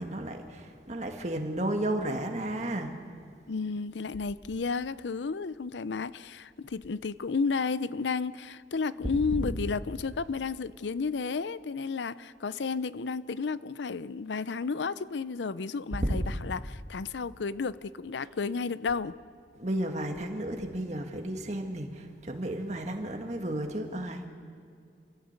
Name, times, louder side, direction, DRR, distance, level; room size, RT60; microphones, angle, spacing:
voice 1, 0.0-2.9 16.0-16.2 19.6-24.2, right 1 dB, 40° right, 4 dB, 1.8 m, -33 dB
voice 2, 3.5-19.1, left 4 dB, 85° left, 17 dB, 0.6 m, -32 dB
27.5 x 14.5 x 8.2 m, 2.2 s
head